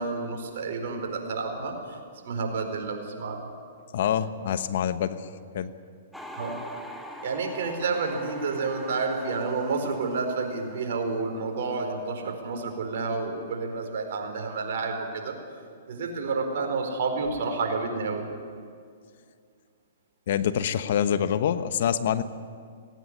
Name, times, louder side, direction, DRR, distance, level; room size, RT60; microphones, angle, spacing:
voice 1, 0.0-2.0 2.2-3.4 6.3-6.6 7.2-15.4 15.9-18.3, right 4 dB, 65° right, 3 dB, 4.6 m, -30 dB
voice 2, 3.9-5.3 5.5-5.7 20.3-22.2, left 9 dB, 60° left, 12 dB, 1.2 m, -26 dB
sound 1, 6.1-12.0 12.2-12.7, equal, ahead, 2.0 m, -44 dB
18.0 x 17.0 x 10.0 m, 2.2 s
hypercardioid pair, 130°, 0 cm